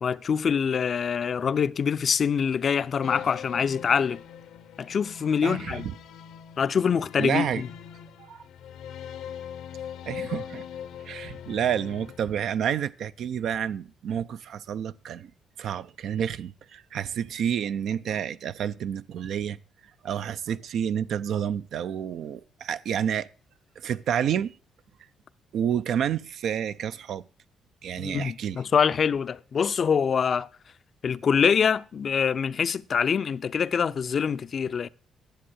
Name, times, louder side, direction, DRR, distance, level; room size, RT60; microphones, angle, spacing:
voice 1, 0.0-4.2 4.8-5.9 6.6-7.7 28.0-30.5 31.0-34.9, left 7 dB, 50° left, 0.4 m, -25 dB
sound 1, 3.0-12.8, left 9 dB, 85° left, 0.8 m, -41 dB
voice 2, 5.4-5.9 7.2-7.6 8.2-8.4 10.1-10.7 11.0-15.3 15.6-19.6 20.0-23.3 23.8-24.6 25.5-27.2 27.8-28.6, right 9 dB, 70° right, 0.5 m, -29 dB
10.5 x 7.4 x 6.3 m
cardioid pair, 90°, 0 cm